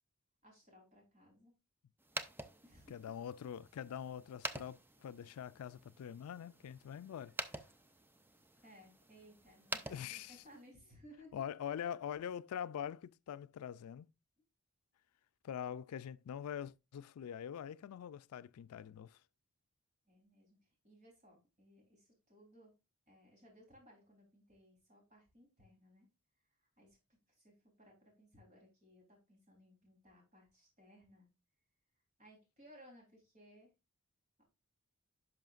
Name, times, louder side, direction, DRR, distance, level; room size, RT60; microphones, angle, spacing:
voice 1, 0.4-1.5 2.6-3.1 8.6-11.4 20.0-22.7 23.1-26.1 26.5-31.3 32.2-33.7 34.4-34.5, equal, 35° right, 3.4 m, -62 dB
sound 1, 2.0-10.7, right 2 dB, 10° right, 0.4 m, -48 dB
voice 2, 2.9-7.3 9.9-10.4 11.3-14.1 15.4-19.2, left 8 dB, 85° left, 0.3 m, -44 dB
10.5 x 5.6 x 2.4 m
head